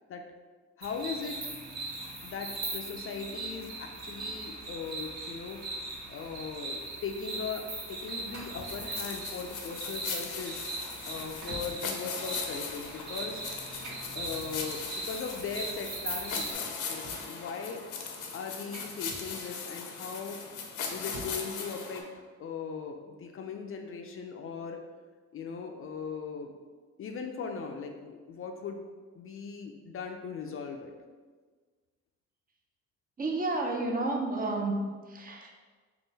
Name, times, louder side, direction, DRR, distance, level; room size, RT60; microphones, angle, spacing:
voice 1, 0.8-1.4 2.2-5.6 6.1-10.6 11.0-13.4 14.1-17.8 18.3-20.4 20.9-22.1 22.4-24.8 25.3-26.5 27.0-28.9 29.1-30.9, left 5 dB, 45° left, 4 dB, 0.4 m, -39 dB
sound 1, 0.8-16.5, right 2 dB, 60° right, 1.3 m, -40 dB
sound 2, 8.1-9.1 9.7-9.9 10.5-10.6 11.0-11.8 13.5-14.8 15.9-16.0 16.3-17.4 18.2-19.6 20.6-21.4, right 1 dB, 85° right, 0.9 m, -48 dB
sound 3, 8.6-22.0, left 5 dB, 85° left, 0.6 m, -39 dB
voice 2, 33.2-34.8 35.1-35.5, right 2 dB, 30° right, 1 dB, 0.6 m, -30 dB
3.7 x 2.3 x 3.9 m, 1.5 s
cardioid pair, 90°, 30 cm